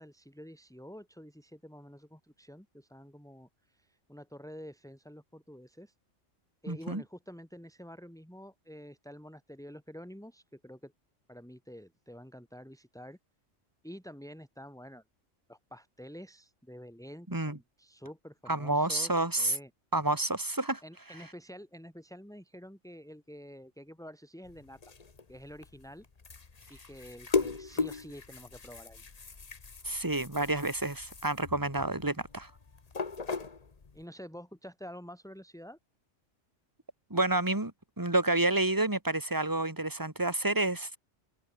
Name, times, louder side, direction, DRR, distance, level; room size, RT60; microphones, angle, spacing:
voice 1, 0.0-5.9 6.6-10.9 11.3-13.2 13.8-15.0 15.5-19.7 20.8-24.8 25.3-26.1 26.7-29.0 33.9-35.8, equal, 5° left, 4.5 m, -48 dB
voice 2, 6.7-7.0 17.3-17.6 18.5-19.6 19.9-20.8 29.8-32.5 37.1-37.7 38.0-41.0, right 2 dB, 15° right, 2.2 m, -29 dB
sound 1, 24.4-34.0, left 4 dB, 30° left, 1.2 m, -38 dB
omnidirectional pair, 1.3 m